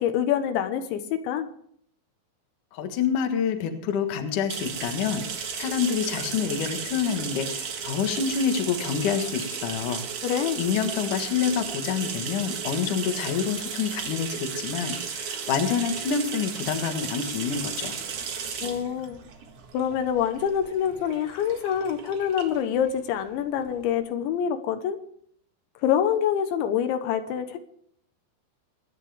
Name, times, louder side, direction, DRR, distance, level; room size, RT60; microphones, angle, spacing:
voice 1, 0.0-1.5 10.2-10.6 18.6-19.2 19.7-25.0 25.8-27.6, left 9 dB, 85° left, 8 dB, 3.4 m, -26 dB
voice 2, 2.7-10.0 10.6-18.0, left 7 dB, 60° left, 6 dB, 2.6 m, -27 dB
sound 1, 4.5-23.9, right 6 dB, 65° right, 1.5 m, -35 dB
24.5 x 10.5 x 3.5 m, 0.65 s
omnidirectional pair, 5.2 m